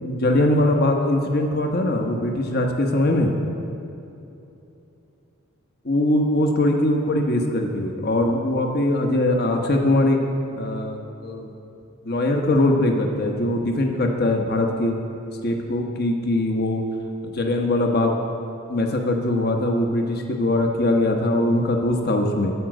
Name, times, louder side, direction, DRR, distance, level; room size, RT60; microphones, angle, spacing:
voice 1, 0.0-3.3 5.8-10.2 10.6-11.5 12.0-15.0 15.4-16.8 17.2-18.1 18.7-22.5, left 1 dB, 50° left, 3 dB, 1.0 m, -21 dB
12.5 x 5.2 x 7.6 m, 2.8 s
head